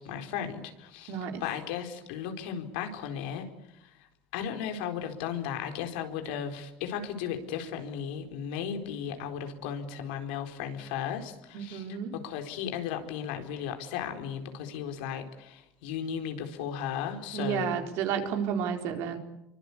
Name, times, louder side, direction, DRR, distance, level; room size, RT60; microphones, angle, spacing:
voice 1, 0.0-4.1 4.3-17.8, left 8 dB, 85° left, 5 dB, 4.3 m, -36 dB
voice 2, 1.1-1.4 11.5-12.1 17.3-19.2, right 8 dB, 60° right, 5 dB, 4.3 m, -31 dB
27.0 x 24.0 x 8.5 m, 0.87 s
cardioid pair, 135°, 5 cm